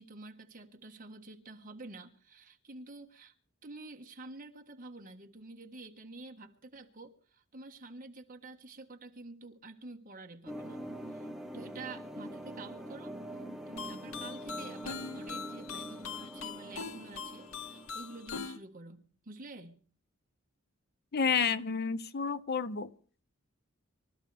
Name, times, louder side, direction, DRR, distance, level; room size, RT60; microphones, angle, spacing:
voice 1, 0.0-3.3 3.6-11.3 11.5-13.2 13.7-19.8, right 2 dB, 40° right, 1.5 m, -49 dB
sound 1, 10.4-18.4, right 1 dB, ahead, 1.1 m, -44 dB
sound 2, 13.8-18.6, left 5 dB, 75° left, 1.0 m, -42 dB
voice 2, 21.1-22.9, left 6 dB, 50° left, 0.6 m, -30 dB
25.0 x 13.0 x 3.4 m
head